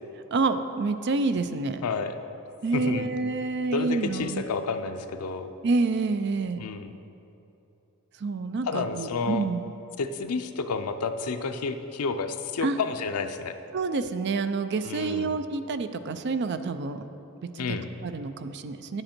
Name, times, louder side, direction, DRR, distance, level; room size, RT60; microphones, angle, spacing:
voice 1, 0.3-1.8 2.6-4.4 5.6-6.6 8.2-9.6 12.6-12.8 13.7-17.0 17.5-17.8 18.0-19.0, right 3 dB, 50° right, 10 dB, 0.4 m, -28 dB
voice 2, 1.8-2.1 2.7-3.1 3.7-5.5 6.6-6.9 8.7-9.5 10.0-13.6 14.8-15.3 17.6-17.9, left 4 dB, 90° left, 8 dB, 0.6 m, -30 dB
9.7 x 7.8 x 4.4 m, 2.9 s
head